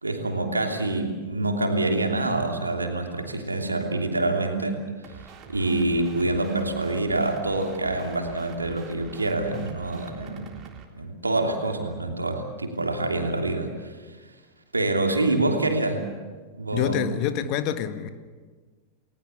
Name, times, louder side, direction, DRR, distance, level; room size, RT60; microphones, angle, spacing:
voice 1, 0.0-4.8 5.5-10.5 10.9-13.9 14.7-16.1 16.5-17.0, right 2 dB, 80° right, 3 dB, 3.0 m, -26 dB
sound 1, 5.0-10.8, right 7 dB, 30° right, 3.5 m, -45 dB
voice 2, 16.7-18.1, left 9 dB, 40° left, 10 dB, 1.5 m, -27 dB
29.5 x 19.5 x 7.0 m, 1.4 s
figure-of-eight pair, 90°, 0 cm